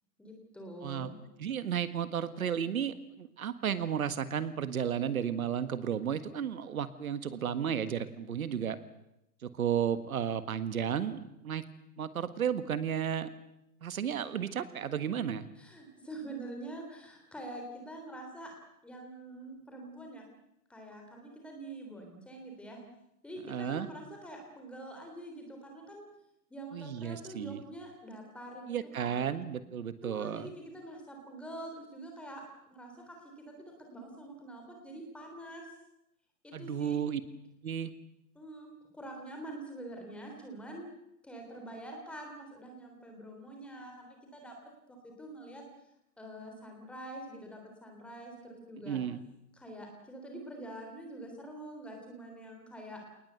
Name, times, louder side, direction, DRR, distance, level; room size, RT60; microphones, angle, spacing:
voice 1, 0.2-1.1 15.6-18.5 18.8-20.2 20.7-22.8 23.2-26.0 26.5-29.2 30.0-32.4 32.7-35.7 36.4-37.0 38.3-40.9 41.2-44.5 44.9-45.6 46.2-49.0 49.5-53.0, right 1 dB, ahead, 2 dB, 3.3 m, -45 dB
voice 2, 1.4-8.8 9.4-11.6 12.0-13.3 13.8-15.5 23.5-23.9 26.7-27.6 28.7-30.5 36.5-37.2 37.6-37.9 48.9-49.2, right 8 dB, 70° right, 12 dB, 1.8 m, -33 dB
28.0 x 19.5 x 8.1 m, 0.84 s
hypercardioid pair, 170°, 44 cm